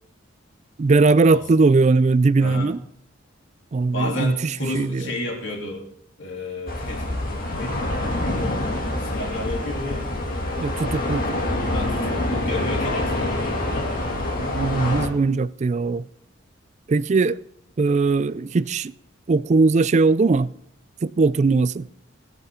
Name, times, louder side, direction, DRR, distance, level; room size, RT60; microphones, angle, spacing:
voice 1, 0.8-2.8 3.7-5.1 10.6-11.3 14.4-16.1 16.9-17.4 17.8-18.9 19.3-20.5 21.0-21.9, right 3 dB, 35° right, 0.3 m, -20 dB
voice 2, 2.4-2.7 3.9-5.9 6.2-10.1 11.7-13.6, left 1 dB, 65° left, 3.2 m, -31 dB
sound 1, 6.7-15.1, left 1 dB, 45° left, 2.3 m, -26 dB
20.0 x 8.2 x 3.7 m
head